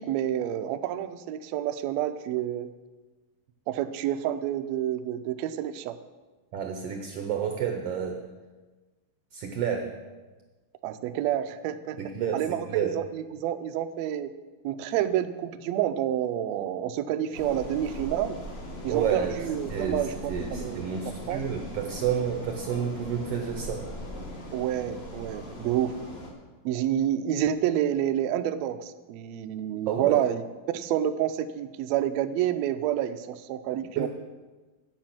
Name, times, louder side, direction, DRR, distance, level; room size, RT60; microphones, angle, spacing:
voice 1, 0.0-2.7 3.7-5.9 10.8-12.0 12.3-14.3 14.6-18.4 18.8-21.4 24.5-26.0 26.6-30.4 30.7-34.1, right 11 dB, 90° right, 9 dB, 1.5 m, -29 dB
voice 2, 6.5-8.2 9.3-9.9 12.0-12.4 12.7-12.9 18.9-19.4 19.7-20.0 20.3-23.8 29.9-30.2 34.0-34.1, right 8 dB, 75° right, 4 dB, 1.4 m, -29 dB
sound 1, 17.3-26.3, left 1 dB, 80° left, 0.5 m, -39 dB
8.8 x 8.4 x 5.9 m, 1.3 s
omnidirectional pair, 3.7 m